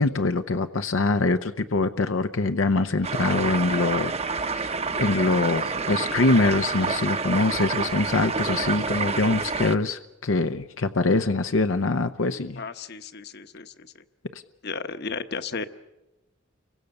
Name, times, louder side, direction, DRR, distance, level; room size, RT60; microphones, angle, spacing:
voice 1, 0.0-12.6 14.3-14.4, left 3 dB, 85° left, 8 dB, 0.8 m, -24 dB
sound 1, 3.0-9.8, right 4 dB, 30° right, 0.8 m, -28 dB
voice 2, 12.6-13.9 14.6-15.6, left 4 dB, 55° left, 11 dB, 1.1 m, -34 dB
30.0 x 23.5 x 6.6 m, 0.98 s
head